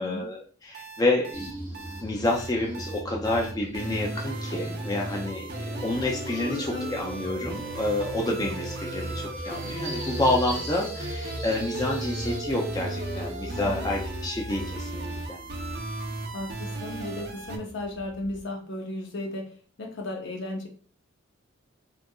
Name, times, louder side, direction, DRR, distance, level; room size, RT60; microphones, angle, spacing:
voice 1, 0.0-1.5 2.0-15.4, left 2 dB, 20° left, -1 dB, 0.4 m, -29 dB
sound 1, 0.7-17.6, right 2 dB, 55° right, 0.5 m, -36 dB
sound 2, 1.3-18.5, equal, 10° right, 0.7 m, -38 dB
voice 2, 6.3-6.9 13.6-13.9 16.3-19.5 19.8-20.7, left 2 dB, 65° left, 2 dB, 0.6 m, -35 dB
2.7 x 2.3 x 2.3 m, 0.41 s
head